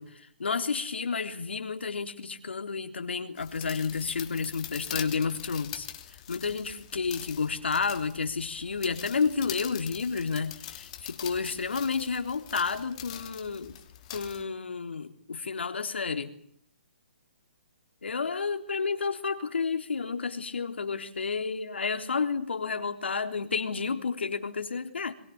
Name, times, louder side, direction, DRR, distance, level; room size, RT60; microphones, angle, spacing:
voice 1, 0.0-13.8 14.1-16.3 18.0-25.1, left 5 dB, 85° left, 7 dB, 3.6 m, -31 dB
sound 1, 3.4-14.4, left 12 dB, 35° left, 3.0 m, -43 dB
23.5 x 22.0 x 8.8 m, 0.62 s
hypercardioid pair, 155°, 6 cm